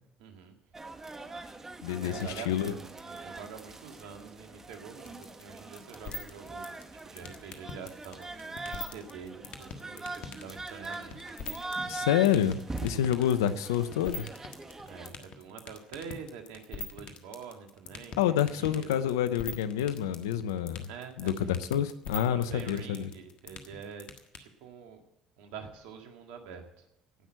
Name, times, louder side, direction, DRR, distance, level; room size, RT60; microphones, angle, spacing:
voice 1, 0.2-0.6 2.0-12.1 14.8-18.2 18.5-19.0 20.9-21.5 22.2-24.1 24.3-25.0 25.4-26.9, right 6 dB, 75° right, 5 dB, 1.9 m, -46 dB
sound 1, 0.7-15.1, right 3 dB, 20° right, 1.5 m, -42 dB
voice 2, 1.8-2.7 11.9-14.3 18.2-20.9 21.2-23.1, left 10 dB, 85° left, 13 dB, 0.8 m, -28 dB
sound 2, 5.1-24.4, left 4 dB, 60° left, 1.5 m, -40 dB
17.5 x 6.2 x 7.7 m, 0.83 s
hypercardioid pair, 65°, 2 cm